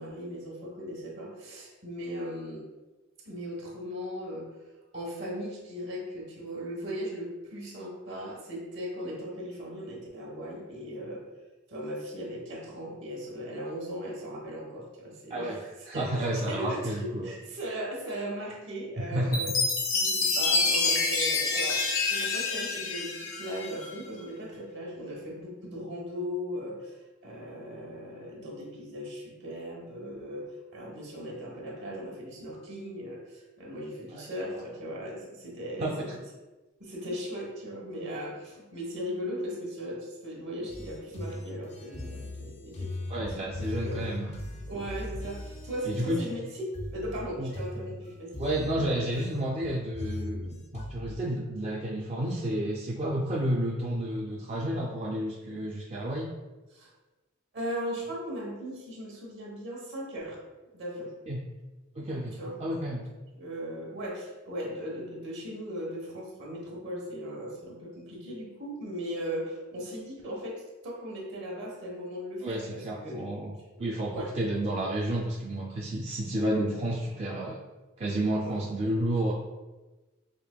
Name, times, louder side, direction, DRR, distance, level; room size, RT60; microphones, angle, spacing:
voice 1, 0.0-2.7 3.2-4.5 4.9-11.2 11.7-19.5 19.9-21.8 22.1-36.1 36.8-44.1 44.7-48.4 56.7-56.9 57.5-60.4 60.7-61.1 62.3-62.6 63.3-73.2 74.1-74.4 78.4-78.6, equal, 60° right, -3 dB, 1.1 m, -38 dB
voice 2, 15.9-17.3 19.0-19.4 34.1-34.3 34.5-34.7 35.8-36.1 43.1-44.4 45.9-46.2 47.4-47.5 48.4-56.3 61.3-61.4 62.0-63.0 72.4-73.5 73.8-77.6 78.0-79.3, right 1 dB, 30° right, -3 dB, 0.3 m, -31 dB
Chime, 19.3-23.9, left 3 dB, 80° left, 0.7 m, -27 dB
sound 1, 40.7-51.2, left 1 dB, 30° left, 0.4 m, -39 dB
5.0 x 2.8 x 2.2 m, 1.2 s
head